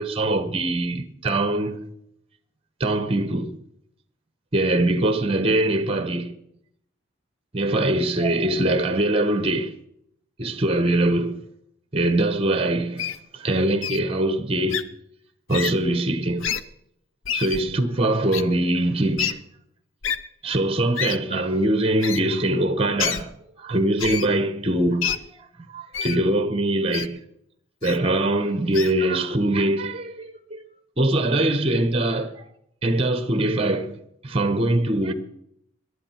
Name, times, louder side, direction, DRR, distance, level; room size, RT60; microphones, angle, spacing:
voice 1, 0.0-1.8 2.8-3.5 4.5-6.3 7.5-9.7 10.4-11.4 11.9-14.9 15.5-16.5 17.3-19.4 20.4-23.3 23.6-25.4 25.7-27.2 27.8-30.6 31.0-32.4 32.8-35.1, right 1 dB, 30° right, 1.0 m, -23 dB
Wild animals, 13.0-13.2 13.8-14.0 14.7-14.8 15.5-15.7 16.4-16.6 17.2-17.6 18.3-18.4 19.2-19.3 20.0-20.2 21.0-21.2 22.0-22.2 23.0-23.2 24.0-24.3 25.0-25.2 25.9-26.2 26.9-27.1 27.8-28.0 28.7-28.9, left 9 dB, 80° left, 0.7 m, -27 dB
18.5 x 11.5 x 4.5 m
head